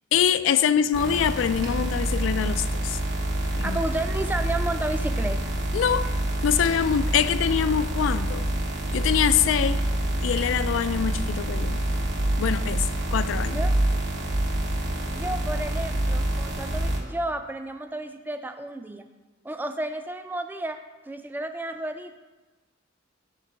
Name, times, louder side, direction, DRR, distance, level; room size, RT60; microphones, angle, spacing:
voice 1, 0.1-3.0 3.5-3.8 5.7-6.1 6.4-8.5 8.9-9.8 10.2-11.8 12.4-13.6, left 8 dB, 80° left, 14 dB, 0.3 m, -24 dB
sound 1, 0.9-17.0, right 1 dB, 70° right, 1.2 m, -27 dB
voice 2, 3.4-5.6 13.5-13.7 15.1-19.1 19.4-20.8 21.1-22.2, right 1 dB, 10° right, 7 dB, 0.3 m, -32 dB
5.9 x 4.5 x 5.8 m, 1.2 s
head